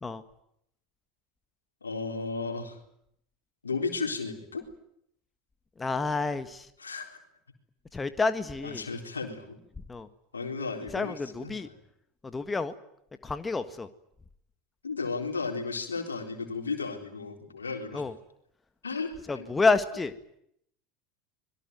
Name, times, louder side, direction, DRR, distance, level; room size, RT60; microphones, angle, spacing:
voice 1, 1.8-2.8 3.6-4.6 6.8-7.2 8.6-9.6 10.3-11.7 14.8-18.0 18.8-19.6, left 4 dB, 80° left, 4 dB, 4.0 m, -34 dB
voice 2, 5.8-6.7 7.9-8.8 9.9-10.1 10.9-11.7 12.2-12.7 13.2-13.9 17.9-18.1 19.3-20.1, left 3 dB, 15° left, 10 dB, 1.7 m, -29 dB
26.0 x 22.0 x 9.4 m, 0.74 s
figure-of-eight pair, 75°, 0 cm